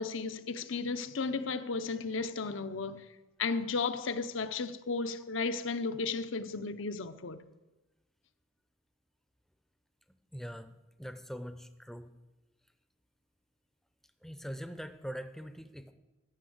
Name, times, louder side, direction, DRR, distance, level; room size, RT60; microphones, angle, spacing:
voice 1, 0.0-3.1 3.4-7.4, left 4 dB, 70° left, 0.7 m, -34 dB
voice 2, 10.3-12.1 14.2-15.9, equal, ahead, 0.5 m, -43 dB
13.0 x 6.2 x 7.8 m
head